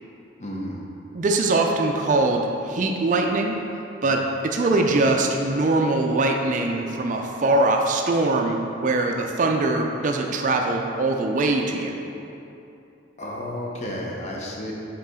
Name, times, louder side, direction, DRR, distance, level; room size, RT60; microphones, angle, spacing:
voice 1, 0.4-0.8 13.2-14.7, left 1 dB, 35° left, -2 dB, 0.8 m, -32 dB
voice 2, 1.1-3.6 4.0-12.0, right 2 dB, 40° right, 2 dB, 0.4 m, -22 dB
6.7 x 4.0 x 3.7 m, 2.8 s
head